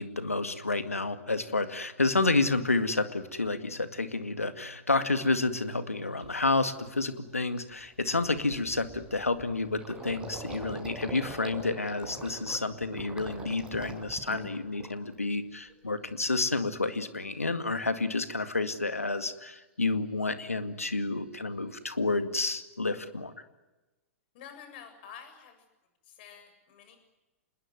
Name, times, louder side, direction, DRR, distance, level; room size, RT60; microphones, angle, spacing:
voice 1, 0.0-23.3, left 3 dB, 85° left, 10 dB, 2.2 m, -30 dB
Gurgling, 6.2-6.5 6.9-7.0 7.3-15.3 15.6-16.3, right 3 dB, 10° right, 5.4 m, -44 dB
voice 2, 24.3-25.7 26.0-27.0, left 8 dB, 45° left, 7 dB, 7.3 m, -49 dB
26.5 x 21.0 x 9.4 m, 1.1 s
figure-of-eight pair, 110°, 8 cm